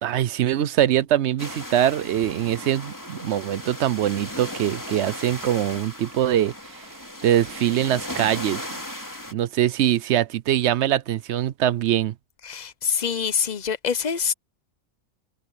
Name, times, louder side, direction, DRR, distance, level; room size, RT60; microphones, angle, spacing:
voice 1, 0.0-6.9 7.2-8.6 9.3-12.1, right 11 dB, 65° right, 0.9 m, -23 dB
sound 1, 1.4-9.3, left 1 dB, 15° left, 2.8 m, -36 dB
voice 2, 12.4-14.3, left 6 dB, 40° left, 0.8 m, -25 dB
omnidirectional pair, 1.3 m